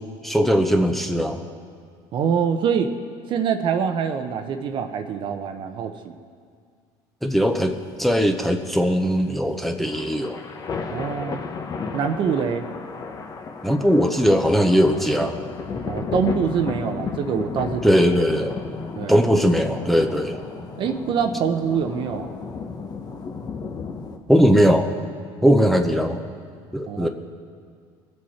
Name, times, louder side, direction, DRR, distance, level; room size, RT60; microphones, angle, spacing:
voice 1, 0.2-1.4 7.2-7.7 8.0-10.4 13.6-15.4 17.8-18.6 19.1-20.4 24.3-24.9 25.4-26.2 26.7-27.1, equal, ahead, 4 dB, 0.8 m, -19 dB
voice 2, 2.1-2.9 3.3-6.1 10.9-11.4 11.9-12.7 15.9-18.1 19.0-19.2 20.8-22.3 25.4-25.5 25.9-26.0 26.9-27.1, right 7 dB, 50° right, 7 dB, 0.8 m, -25 dB
sound 1, 7.3-24.2, left 5 dB, 40° left, 1.1 m, -33 dB
21.5 x 7.7 x 4.3 m, 2.1 s
supercardioid pair, 110°, 11 cm